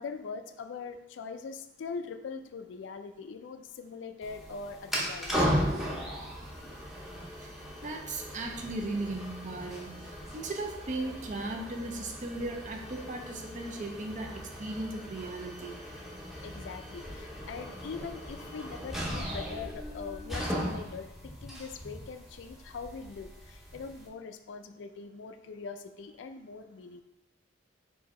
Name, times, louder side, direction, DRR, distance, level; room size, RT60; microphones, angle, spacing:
voice 1, 0.0-5.5 16.4-27.0, left 5 dB, 70° left, 9 dB, 0.3 m, -42 dB
sound 1, 4.2-24.1, equal, ahead, 0.7 m, -37 dB
voice 2, 7.4-9.9 10.3-15.8, right 2 dB, 40° right, 3 dB, 0.6 m, -37 dB
4.6 x 2.7 x 4.2 m, 0.88 s
head